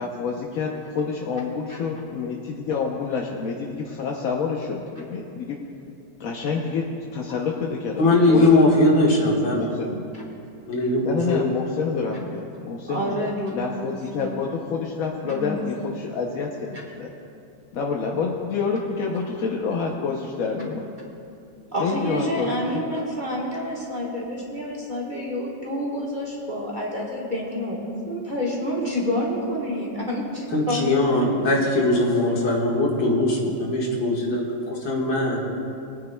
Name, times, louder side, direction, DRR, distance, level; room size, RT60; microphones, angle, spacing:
voice 1, 0.0-5.6 6.2-8.6 9.2-10.0 11.0-17.1 17.7-20.9 21.8-22.8, left 5 dB, 60° left, 0 dB, 0.9 m, -28 dB
voice 2, 8.0-9.7 10.7-11.5 30.5-35.4, left 2 dB, 85° left, -3 dB, 2.4 m, -20 dB
voice 3, 12.9-14.4 15.2-15.6 21.7-31.5, equal, 30° right, -4 dB, 1.2 m, -28 dB
22.0 x 9.3 x 2.2 m, 2.7 s
omnidirectional pair, 2.0 m